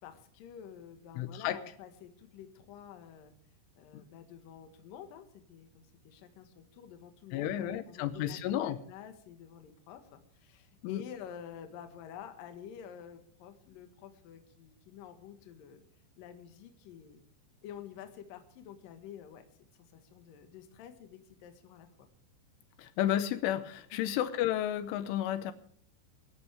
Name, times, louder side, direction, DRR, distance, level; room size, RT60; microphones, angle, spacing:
voice 1, 0.0-3.3 3.8-15.8 16.2-17.2 17.6-19.5 19.9-22.1 23.9-24.1, left 9 dB, 60° left, 7 dB, 2.6 m, -49 dB
voice 2, 1.2-1.6 7.3-8.8 10.8-11.0 22.8-25.5, left 11 dB, 80° left, 12 dB, 3.2 m, -32 dB
23.5 x 11.5 x 3.4 m, 0.62 s
omnidirectional pair, 5.6 m